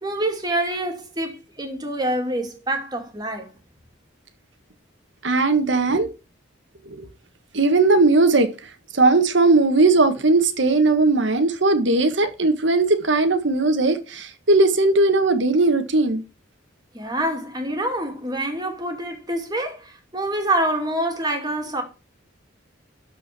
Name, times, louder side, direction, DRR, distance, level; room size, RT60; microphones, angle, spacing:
voice 1, 0.0-3.5 16.9-21.8, right 1 dB, 20° right, 2.6 m, -26 dB
voice 2, 5.2-6.1 6.9-7.1 7.5-8.5 8.9-16.2, right 3 dB, 65° right, 1.6 m, -18 dB
13.0 x 5.0 x 6.1 m
head